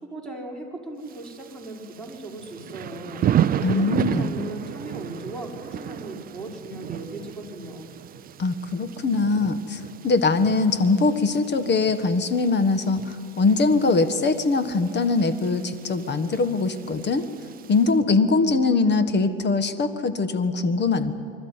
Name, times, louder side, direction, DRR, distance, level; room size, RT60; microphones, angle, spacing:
voice 1, 0.0-3.2 3.7-7.9, right 1 dB, ahead, -1 dB, 5.0 m, -37 dB
Thunder / Rain, 1.1-17.9, right 10 dB, 20° right, 0.5 m, -33 dB
voice 2, 3.6-4.4 8.4-17.3 17.7-21.1, left 3 dB, 25° left, 11 dB, 1.5 m, -22 dB
24.5 x 13.5 x 9.7 m, 2.4 s
hypercardioid pair, 95°, 41 cm